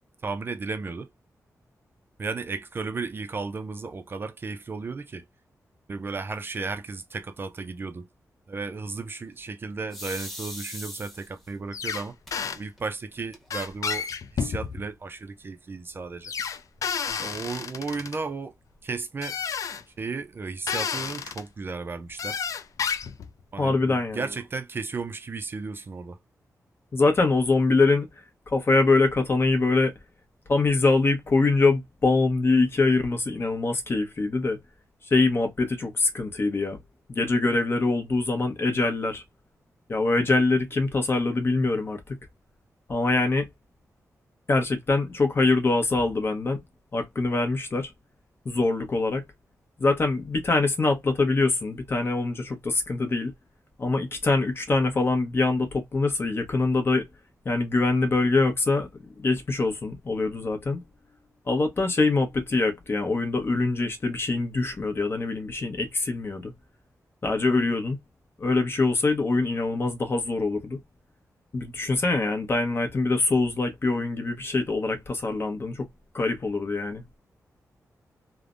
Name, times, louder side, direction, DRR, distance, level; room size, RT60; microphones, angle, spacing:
voice 1, 0.2-1.1 2.2-5.2 5.9-8.1 8.5-12.2 12.5-16.3 17.2-18.5 18.8-19.4 20.0-22.4 23.5-26.2, right 4 dB, 40° right, 0.4 m, -34 dB
sound 1, 9.9-11.5 12.3-12.4 12.8-12.9 13.1-13.7, equal, ahead, 1.0 m, -39 dB
sound 2, 11.7-12.0 12.3-12.6 13.5-14.9 16.2-18.2 19.2-19.8 20.7-21.4 22.2-23.3, left 6 dB, 65° left, 0.4 m, -31 dB
voice 2, 23.6-24.2 26.9-28.1 28.5-29.9 30.5-34.6 35.1-36.8 37.1-39.2 39.9-42.0 42.9-43.5 44.5-46.6 46.9-47.9 48.4-49.2 49.8-53.3 53.8-57.1 57.4-58.9 59.2-60.8 61.5-66.5 67.2-68.0 68.4-70.8 71.5-75.9 76.1-77.0, left 3 dB, 40° left, 0.9 m, -24 dB
3.2 x 2.1 x 2.4 m
wide cardioid pair, 130°, 6 cm